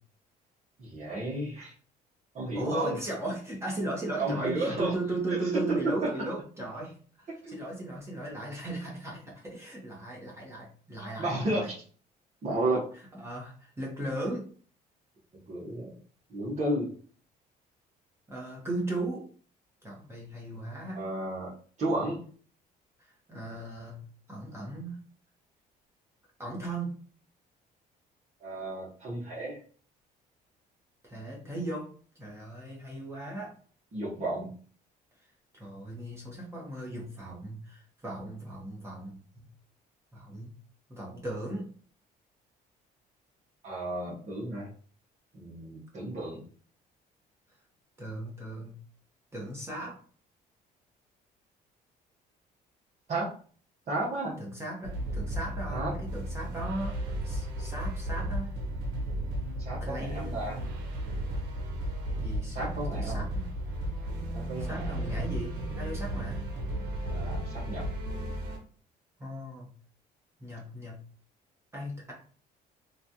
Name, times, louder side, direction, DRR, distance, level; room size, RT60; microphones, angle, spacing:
voice 1, 0.8-1.7 2.3-3.0 4.2-4.9 5.3-5.4 7.4-7.5 11.2-11.7 12.4-12.8 15.5-15.9 16.3-16.9 20.9-21.5 21.8-22.2 28.4-29.6 33.9-34.5 43.6-44.7 45.3-46.4 53.1-53.3 53.9-54.4 55.7-55.9 59.6-60.6 62.5-63.2 64.3-65.0 67.1-67.9, right 1 dB, 45° right, -7 dB, 1.1 m, -32 dB
voice 2, 2.4-11.7 12.9-14.5 18.3-19.2 19.8-21.1 23.0-24.0 24.3-25.0 26.4-27.0 31.0-31.9 32.1-33.5 35.5-39.5 40.1-40.5 40.9-41.7 48.0-48.8 49.3-50.0 54.4-57.0 57.2-58.5 59.8-60.4 62.2-63.5 64.6-66.4 69.2-69.7 70.4-71.0 71.7-72.1, right 1 dB, 15° right, -3 dB, 1.1 m, -37 dB
sound 1, 54.8-68.6, right 1 dB, 85° right, 0.8 m, -34 dB
3.1 x 2.3 x 2.7 m, 0.43 s
cardioid pair, 110°, 17 cm